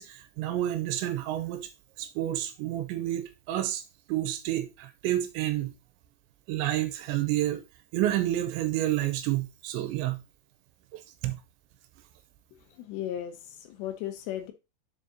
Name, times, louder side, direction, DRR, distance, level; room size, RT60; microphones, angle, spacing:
voice 1, 0.0-1.7 2.0-3.8 4.1-5.7 6.5-7.6 7.9-10.2 10.9-11.4, right 13 dB, 80° right, 2.9 m, -29 dB
voice 2, 12.8-14.5, left 11 dB, 80° left, 2.7 m, -36 dB
7.3 x 7.0 x 2.7 m
omnidirectional pair, 5.2 m